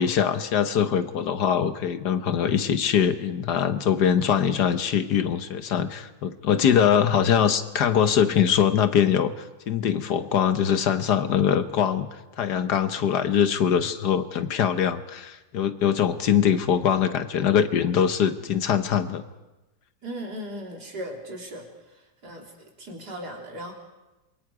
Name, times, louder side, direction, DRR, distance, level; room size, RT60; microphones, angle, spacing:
voice 1, 0.0-9.3 9.7-12.1 12.4-19.2, left 8 dB, 70° left, 11 dB, 1.5 m, -22 dB
voice 2, 20.0-22.5 22.8-23.7, equal, 65° right, 0 dB, 4.0 m, -37 dB
27.0 x 23.0 x 4.8 m, 1.1 s
omnidirectional pair, 1.9 m